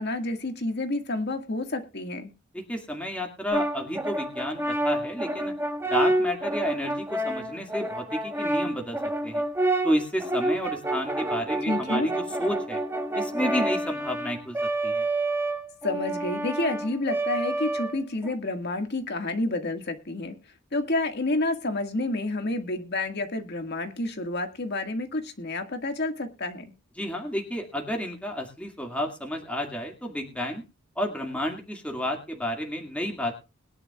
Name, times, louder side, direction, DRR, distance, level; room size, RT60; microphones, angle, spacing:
voice 1, 0.0-2.3 11.7-12.1 15.8-20.4 20.7-26.7, left 2 dB, 50° left, 6 dB, 1.9 m, -29 dB
voice 2, 2.5-5.5 5.9-9.0 9.2-9.4 9.8-12.8 13.1-14.6 14.8-15.1 27.0-30.6 31.0-33.3, equal, 5° left, 1 dB, 2.1 m, -31 dB
Brass instrument, 3.5-18.3, right 1 dB, 10° right, 1.2 m, -28 dB
21.5 x 10.5 x 2.4 m, 0.29 s
head